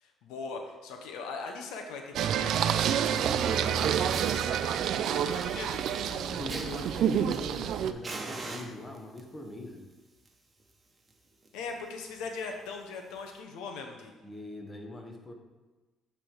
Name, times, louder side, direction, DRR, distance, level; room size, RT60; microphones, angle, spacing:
voice 1, 0.0-2.6 2.9-3.5 5.1-5.8 11.5-14.1, left 4 dB, 85° left, 3 dB, 0.7 m, -40 dB
Singing, 2.1-7.9, right 9 dB, 70° right, 0.3 m, -28 dB
voice 2, 3.1-4.2 6.1-9.8 14.2-15.3, left 1 dB, 20° left, 3 dB, 1.1 m, -42 dB
Fire, 3.6-3.7 4.1-4.5 5.1-7.7 8.0-9.2 10.0-10.3 10.6-10.7 11.1-11.2 11.4-11.7 12.2-12.3 13.2-13.3, right 3 dB, 30° right, 1.0 m, -43 dB
8.5 x 3.4 x 4.6 m, 1.2 s
cardioid pair, 85°, 0 cm